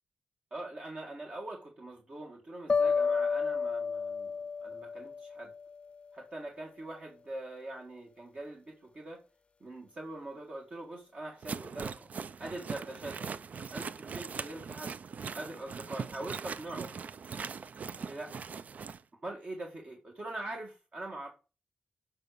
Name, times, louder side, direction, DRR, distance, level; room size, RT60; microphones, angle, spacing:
voice 1, 0.5-4.3 4.6-5.5 6.1-9.2 9.6-12.1 12.4-13.4 13.7-14.9 15.3-16.9 18.0-18.3 19.2-21.3, right 2 dB, 45° right, 1.9 m, -43 dB
sound 1, 2.7-5.8, left 5 dB, 40° left, 0.5 m, -31 dB
sound 2, 11.4-19.0, right 6 dB, 60° right, 0.4 m, -40 dB
9.6 x 5.4 x 6.8 m
wide cardioid pair, 100°, 3 cm